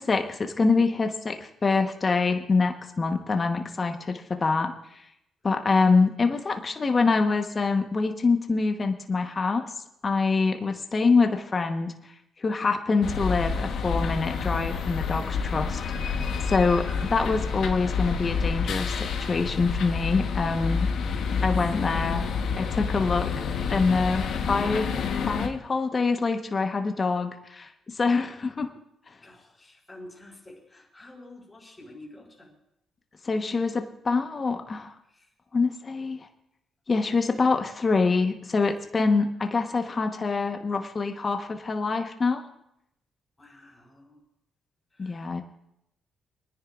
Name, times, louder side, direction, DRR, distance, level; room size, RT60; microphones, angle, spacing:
voice 1, 0.0-5.0 5.4-9.7 10.0-11.9 12.4-16.2 16.5-20.9 21.4-22.3 22.6-23.3 23.7-24.9 25.3-28.7 33.2-34.9 35.5-36.3 36.9-42.4 45.0-45.4, left 4 dB, 35° left, 5 dB, 1.1 m, -25 dB
sound 1, 13.0-25.5, left 5 dB, 70° left, 1.1 m, -28 dB
voice 2, 16.9-17.2 29.2-32.5 35.1-35.3 39.1-39.3 43.4-44.2 44.9-45.4, left 1 dB, 15° left, -4 dB, 4.6 m, -49 dB
26.5 x 10.0 x 2.5 m, 0.80 s
cardioid pair, 90°, 0 cm